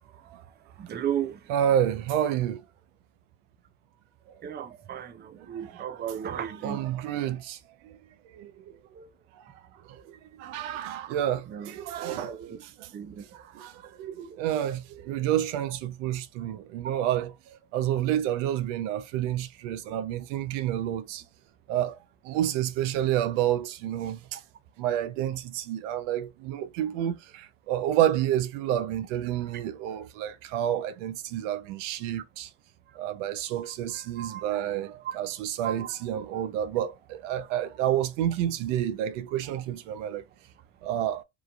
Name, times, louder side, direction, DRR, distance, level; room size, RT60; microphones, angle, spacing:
voice 1, 0.9-1.4 4.4-6.8 9.0-9.1 11.5-11.7 12.0-12.6 12.9-13.2 33.6-33.7 34.2-34.5 35.6-35.9, right 9 dB, 30° right, 0.5 m, -34 dB
voice 2, 1.5-2.6 4.3-4.4 5.4-6.1 6.6-7.6 7.8-8.0 8.3-8.8 9.9-12.9 13.3-17.3 17.7-21.2 21.7-22.0 22.2-24.4 24.8-32.5 33.0-40.2 40.8-41.2, right 11 dB, 80° right, 0.5 m, -29 dB
3.0 x 2.4 x 2.2 m
supercardioid pair, 85°, 36 cm